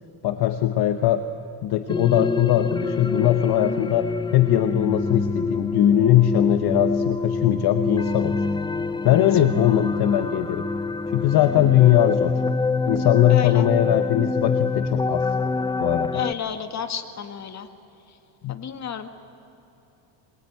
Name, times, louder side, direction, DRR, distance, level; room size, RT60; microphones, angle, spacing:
voice 1, 0.2-1.3 1.6-8.4 9.0-10.7 11.1-12.3 12.9-15.3 15.8-16.2 18.4-18.5, left 12 dB, 50° left, 9 dB, 1.1 m, -20 dB
sound 1, 1.9-16.3, left 3 dB, 10° left, 0.5 m, -26 dB
voice 2, 13.3-13.7 16.1-17.7 18.5-19.1, left 8 dB, 35° left, 8 dB, 1.8 m, -31 dB
22.5 x 22.0 x 9.3 m, 3.0 s
cardioid pair, 130°, 48 cm